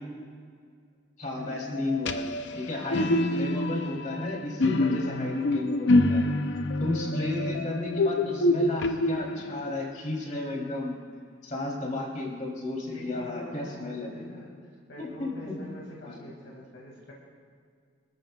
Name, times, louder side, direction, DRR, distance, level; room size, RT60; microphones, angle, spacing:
voice 1, 1.2-2.3 2.5-6.2 6.8-11.0 11.4-14.1 15.0-15.5 16.1-16.2, left 2 dB, 40° left, -2 dB, 3.2 m, -33 dB
sound 1, 1.4-9.7, left 2 dB, 65° left, 0.6 m, -27 dB
voice 2, 2.7-3.5 12.9-17.1, left 1 dB, 85° left, -4 dB, 2.3 m, -45 dB
26.0 x 13.5 x 2.4 m, 2.1 s
head